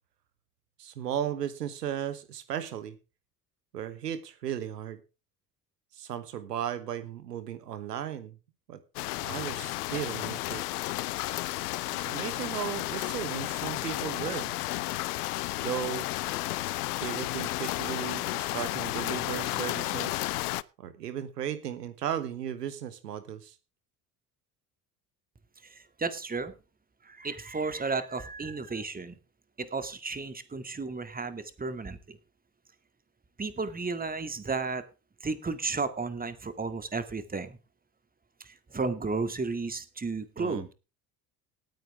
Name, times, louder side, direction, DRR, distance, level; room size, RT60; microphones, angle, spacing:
voice 1, 0.8-3.0 3.7-5.0 5.9-8.3 8.7-8.8 9.2-10.6 12.0-14.6 15.6-16.1 17.0-20.3 20.8-23.5 40.4-40.6, right 10 dB, 80° right, 13 dB, 1.2 m, -35 dB
sound 1, 9.0-20.6, left 18 dB, 75° left, 0.7 m, -32 dB
voice 2, 25.6-26.5 27.0-29.2 29.6-32.2 33.4-34.8 35.2-37.6 38.4-40.7, right 4 dB, 20° right, 11 dB, 2.2 m, -33 dB
19.0 x 9.1 x 3.5 m, 0.31 s
figure-of-eight pair, 60°, 47 cm